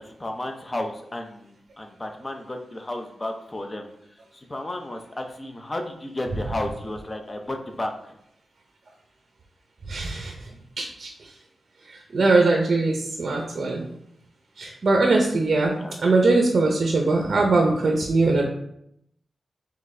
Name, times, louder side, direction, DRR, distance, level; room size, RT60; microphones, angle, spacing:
voice 1, 0.0-3.9 4.3-8.2 15.8-16.0, left 1 dB, 25° left, 4 dB, 0.6 m, -33 dB
voice 2, 9.9-10.5 10.8-11.3 11.9-13.8 14.6-18.4, right 3 dB, 55° right, 1 dB, 0.6 m, -21 dB
3.8 x 3.5 x 3.2 m, 0.74 s
wide cardioid pair, 90°, 0 cm